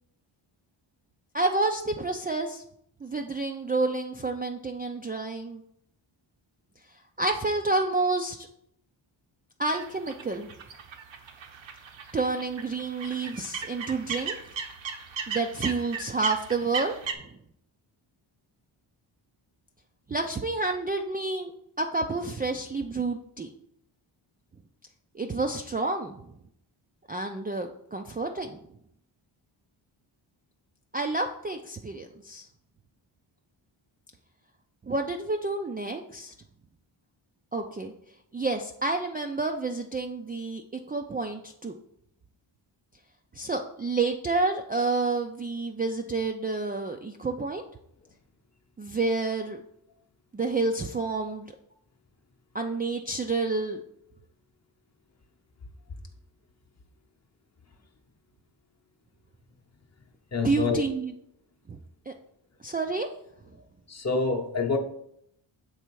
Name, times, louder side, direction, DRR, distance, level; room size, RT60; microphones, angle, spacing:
voice 1, 1.3-2.6 3.0-5.6 7.2-8.5 9.6-10.5 12.1-14.4 15.3-17.4 20.1-21.5 21.8-23.5 25.1-26.3 27.1-28.6 30.9-32.5 34.8-36.3 37.5-37.9 38.3-40.6 40.9-41.8 43.3-47.6 48.8-49.6 50.3-51.5 52.5-53.8 60.4-61.1 61.7-61.8 62.1-62.2 62.6-63.1, right 3 dB, 20° right, 0.3 m, -29 dB
sound 1, 9.7-17.1, right 6 dB, 65° right, 0.8 m, -37 dB
voice 2, 60.3-60.8 63.9-64.8, left 4 dB, 30° left, 0.8 m, -26 dB
6.9 x 3.3 x 4.6 m
cardioid pair, 85°, 49 cm